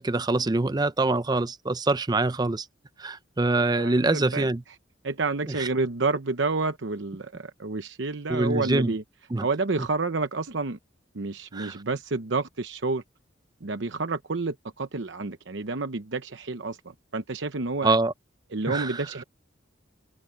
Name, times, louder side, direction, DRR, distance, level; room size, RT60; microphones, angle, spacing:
voice 1, 0.0-2.7 3.0-4.6 5.6-5.7 8.3-8.9 9.3-9.5 11.5-11.7 17.8-18.1 18.7-18.9, right 2 dB, 20° right, 0.5 m, -24 dB
voice 2, 3.6-4.8 5.0-9.0 9.4-10.8 11.1-13.0 13.6-17.9 18.5-19.2, right 3 dB, 70° right, 0.9 m, -29 dB
head